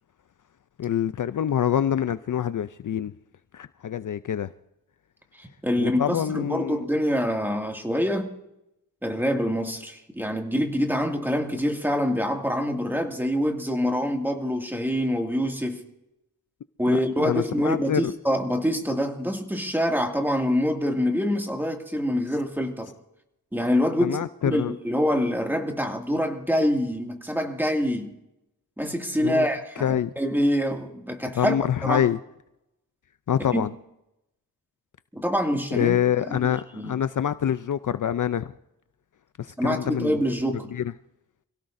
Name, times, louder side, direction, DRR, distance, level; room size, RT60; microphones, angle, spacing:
voice 1, 0.8-3.1 3.5-4.5 5.8-6.8 16.9-18.1 24.0-24.7 29.2-29.5 29.8-30.1 31.4-32.2 33.3-33.7 35.7-38.5 39.4-40.2 40.7-40.8, left 9 dB, 55° left, 0.5 m, -26 dB
voice 2, 5.4-8.3 9.0-15.8 16.8-22.9 23.5-24.2 24.4-28.1 28.8-32.1 33.5-33.6 35.1-37.0 39.6-40.7, equal, 5° right, 2.2 m, -25 dB
27.5 x 17.0 x 2.6 m
wide cardioid pair, 100°, 37 cm